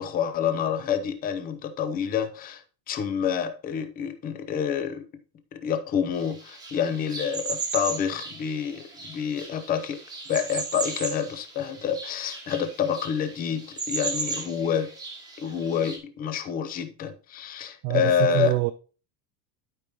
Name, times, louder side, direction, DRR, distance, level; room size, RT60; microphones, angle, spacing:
voice 1, 0.0-2.6 2.9-5.0 5.5-10.0 10.3-14.9 15.4-18.5, left 8 dB, 20° left, 0.6 m, -28 dB
sound 1, 6.1-16.0, right 4 dB, 10° right, 1.2 m, -36 dB
voice 2, 17.8-18.7, right 20 dB, 50° right, 0.5 m, -25 dB
12.0 x 5.1 x 3.0 m
cardioid pair, 180°, 41 cm